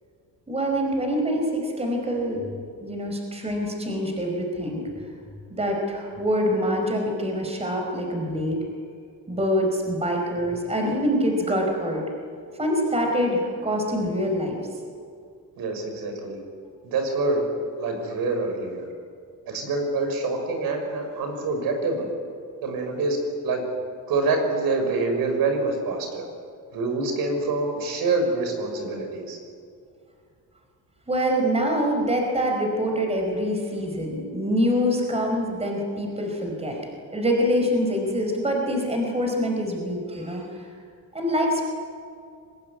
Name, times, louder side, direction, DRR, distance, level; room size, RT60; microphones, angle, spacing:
voice 1, 0.5-2.5 2.8-4.9 5.5-8.6 9.3-12.0 12.6-14.6 31.1-36.8 37.1-40.7 41.1-41.6, equal, 15° right, 2 dB, 4.7 m, -25 dB
voice 2, 15.6-16.4 16.8-17.4 17.8-18.9 19.5-22.1 22.6-23.2 23.4-23.6 24.1-26.3 26.7-29.4, right 3 dB, 70° right, 4 dB, 6.0 m, -26 dB
25.0 x 19.0 x 9.6 m, 2.4 s
cardioid pair, 145°, 37 cm